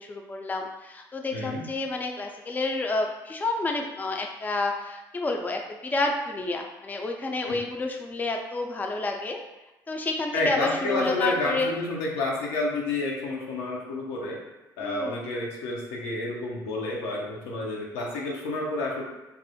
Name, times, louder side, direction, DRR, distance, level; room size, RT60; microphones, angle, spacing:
voice 1, 0.0-9.4 9.9-11.7 14.8-15.2, left 2 dB, 20° left, 2 dB, 0.3 m, -30 dB
voice 2, 1.3-1.6 7.5-7.6 10.3-14.4 14.8-19.0, left 2 dB, 85° left, -2 dB, 0.5 m, -29 dB
2.3 x 2.0 x 2.7 m, 1.0 s
supercardioid pair, 65°, 9 cm